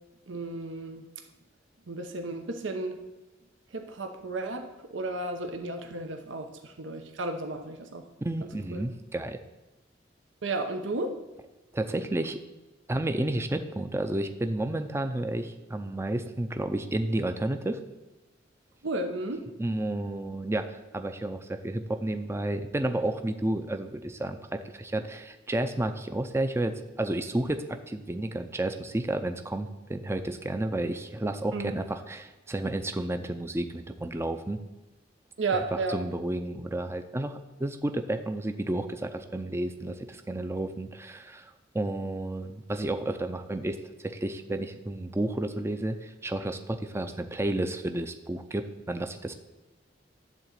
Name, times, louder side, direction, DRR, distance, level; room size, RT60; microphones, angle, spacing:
voice 1, 0.3-1.1 1.9-3.0 3.7-8.1 8.4-8.8 10.4-11.2 18.8-19.4 31.5-31.8 35.4-36.0, right 2 dB, 85° right, 6 dB, 0.9 m, -33 dB
voice 2, 8.2-9.4 11.7-12.4 12.9-17.8 19.6-34.6 35.5-35.6 35.9-49.3, right 1 dB, 15° right, 8 dB, 0.5 m, -31 dB
11.0 x 4.0 x 7.4 m, 1.1 s
head